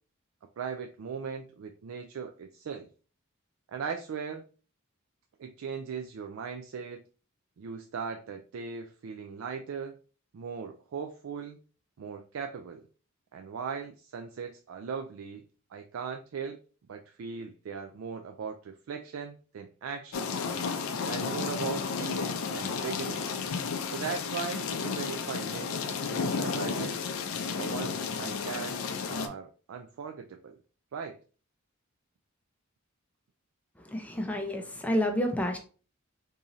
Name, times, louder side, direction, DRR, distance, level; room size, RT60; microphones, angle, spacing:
voice 1, 0.6-2.9 3.7-4.4 5.4-7.0 7.6-9.9 10.3-11.6 12.0-12.8 13.3-15.4 15.7-16.6 16.9-20.3 21.1-23.3 23.9-27.1 27.6-30.6 30.9-31.2, right 6 dB, 80° right, 4 dB, 0.4 m, -38 dB
sound 1, 20.1-29.3, left 5 dB, 80° left, 0.5 m, -32 dB
voice 2, 33.8-35.6, left 1 dB, 5° left, 3 dB, 0.5 m, -29 dB
3.7 x 2.7 x 3.0 m, 0.37 s
head